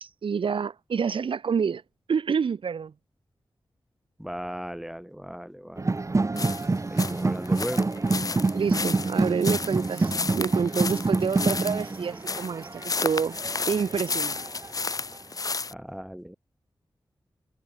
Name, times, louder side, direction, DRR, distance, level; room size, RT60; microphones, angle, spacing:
voice 1, 0.0-1.8 2.1-2.9 8.5-13.4 13.7-14.4, right 6 dB, 90° right, 1.1 m, -28 dB
voice 2, 4.2-5.9 6.9-7.9 15.7-16.4, equal, 5° right, 3.7 m, -36 dB
sound 1, 5.8-14.7, right 3 dB, 35° right, 2.2 m, -27 dB
sound 2, 6.4-15.7, left 4 dB, 45° left, 0.8 m, -32 dB
wide cardioid pair, 95°, 9 cm